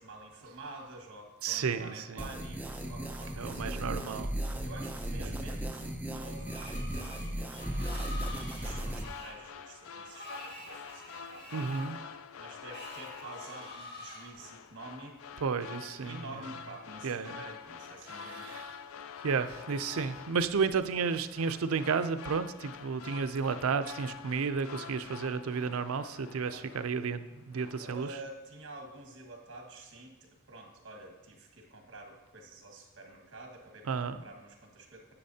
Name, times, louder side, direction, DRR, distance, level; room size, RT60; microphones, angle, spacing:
voice 1, 0.0-3.9 4.6-8.1 8.5-11.9 12.3-19.0 26.4-26.6 27.8-35.2, right 2 dB, 60° right, 2 dB, 1.6 m, -49 dB
voice 2, 1.4-2.2 3.4-4.3 5.1-5.3 11.5-12.0 15.4-16.2 17.0-17.4 18.2-18.8 19.2-28.1 33.9-34.2, right 5 dB, 90° right, 11 dB, 0.5 m, -32 dB
sound 1, 2.2-9.0, right 1 dB, 10° right, 0.6 m, -36 dB
Screech, 6.4-14.3, left 1 dB, 50° left, 1.7 m, -47 dB
sound 2, 8.1-27.2 27.5-28.1, left 7 dB, 75° left, 0.4 m, -47 dB
9.9 x 8.3 x 2.8 m, 1.1 s
head